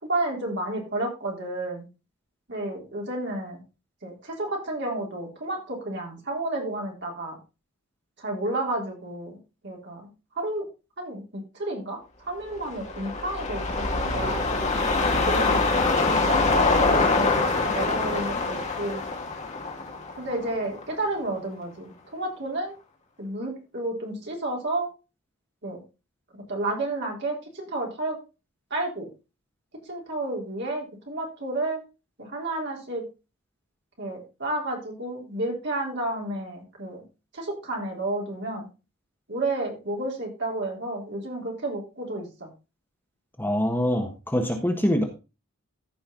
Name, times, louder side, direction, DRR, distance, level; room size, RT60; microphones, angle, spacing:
voice 1, 0.0-1.9 2.5-3.6 4.0-7.4 8.2-9.4 9.6-10.6 11.0-12.0 12.2-14.5 15.2-15.8 16.1-19.0 20.2-22.7 23.2-24.9 25.6-25.8 26.3-28.2 28.7-29.1 29.9-31.8 32.2-33.0 34.0-37.0 37.3-38.7 39.3-42.5, right 2 dB, 55° right, 0 dB, 3.7 m, -31 dB
sound 1, 12.6-21.0 21.4-21.5, left 3 dB, 30° left, 2.0 m, -24 dB
voice 2, 43.4-45.0, equal, 10° left, 3 dB, 1.3 m, -24 dB
14.5 x 5.5 x 3.8 m, 0.29 s
head